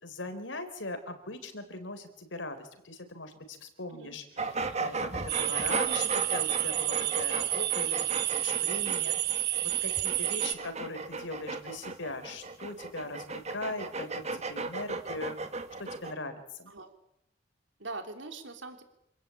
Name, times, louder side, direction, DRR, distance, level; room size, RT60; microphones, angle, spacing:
voice 1, 0.0-4.2 4.6-15.4 15.8-16.7, left 2 dB, 85° left, 8 dB, 4.2 m, -40 dB
sound 1, 4.4-16.1, right 3 dB, 35° right, 1.9 m, -36 dB
sound 2, 5.3-10.5, right 14 dB, 60° right, 1.2 m, -30 dB
voice 2, 17.8-18.8, right 3 dB, 80° right, 6 dB, 3.5 m, -42 dB
27.5 x 17.0 x 8.6 m, 0.79 s
head